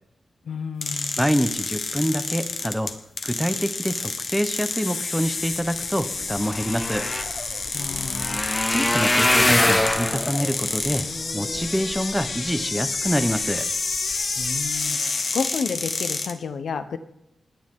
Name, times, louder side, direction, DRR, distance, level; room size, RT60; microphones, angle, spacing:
voice 1, 0.4-1.2 7.7-8.4 14.4-17.0, left 5 dB, 90° left, 11 dB, 1.1 m, -31 dB
sound 1, 0.8-16.3, left 4 dB, 50° left, 1.3 m, -29 dB
voice 2, 1.2-2.9 3.2-7.1 8.7-11.1 11.3-13.7, equal, ahead, 9 dB, 0.9 m, -26 dB
sound 2, 5.8-5.9 6.1-12.5 13.1-13.5 13.9-14.1 14.4-14.5, left 1 dB, 20° left, 1.3 m, -25 dB
28.5 x 10.5 x 3.8 m, 0.83 s
wide cardioid pair, 170°, 0 cm